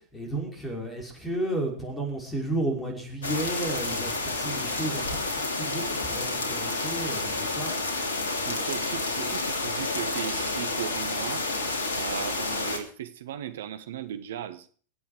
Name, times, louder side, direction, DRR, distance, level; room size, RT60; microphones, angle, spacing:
voice 1, 0.1-7.7, right 1 dB, 15° left, 2 dB, 5.4 m, -32 dB
sound 1, 3.2-12.8, left 3 dB, 65° left, 3.0 m, -30 dB
voice 2, 8.4-11.5 11.9-14.7, right 11 dB, 60° right, 10 dB, 1.4 m, -37 dB
23.5 x 8.7 x 5.0 m, 0.44 s
figure-of-eight pair, 90°, 0 cm